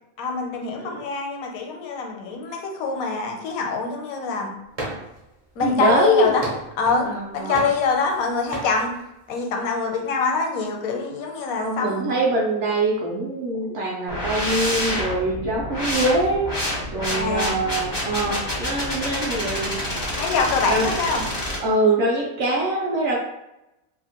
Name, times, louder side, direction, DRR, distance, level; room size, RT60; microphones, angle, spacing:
voice 1, 0.2-4.5 5.6-6.4 6.8-7.1 7.3-8.9 9.3-12.2 17.1-17.6 20.2-21.2, left 4 dB, 80° left, 2 dB, 1.0 m, -25 dB
sound 1, 4.8-5.2 5.6-7.1 7.5-8.2 8.5-8.8, right 1 dB, 40° right, 0.5 m, -34 dB
voice 2, 5.6-6.3 7.0-7.6 11.5-16.5 16.9-20.0 20.6-21.0 21.6-23.2, right 1 dB, 65° right, -2 dB, 0.8 m, -23 dB
sound 2, 14.1-21.6, left 1 dB, 25° left, 0.4 m, -28 dB
2.7 x 2.4 x 2.8 m, 0.90 s
omnidirectional pair, 1.5 m